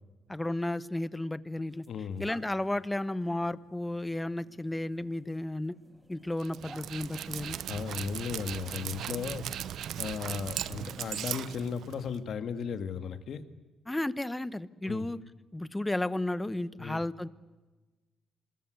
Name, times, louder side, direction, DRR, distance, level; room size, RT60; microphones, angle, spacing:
voice 1, 0.3-1.8 2.2-5.7 6.1-7.6 13.9-15.2 15.5-17.3, left 1 dB, 10° left, 16 dB, 1.0 m, -33 dB
sound 1, 0.9-1.1 1.6-9.0, right 1 dB, 10° right, 2.4 m, -57 dB
voice 2, 1.9-2.3 7.7-9.5 10.0-13.4 14.9-15.1 16.8-17.0, left 6 dB, 60° left, 10 dB, 2.0 m, -36 dB
Dog, 6.4-12.2, right 10 dB, 70° right, 0.9 m, -38 dB
26.0 x 21.0 x 8.0 m, 1.2 s
cardioid pair, 90°, 0 cm